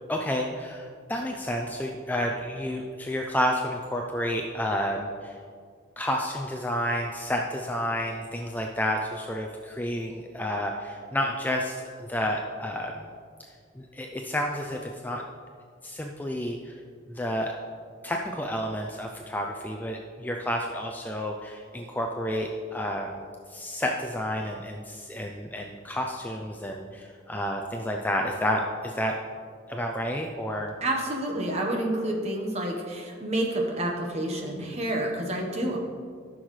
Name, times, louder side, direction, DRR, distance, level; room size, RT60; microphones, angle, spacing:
voice 1, 0.1-5.4 6.0-13.1 13.8-15.2 15.8-16.7 17.1-17.5 18.0-23.2 23.5-29.1 29.7-30.7, equal, 10° left, 1 dB, 0.4 m, -30 dB
voice 2, 30.8-35.8, right 1 dB, 30° right, 0 dB, 1.1 m, -29 dB
13.5 x 6.2 x 3.2 m, 2.1 s
head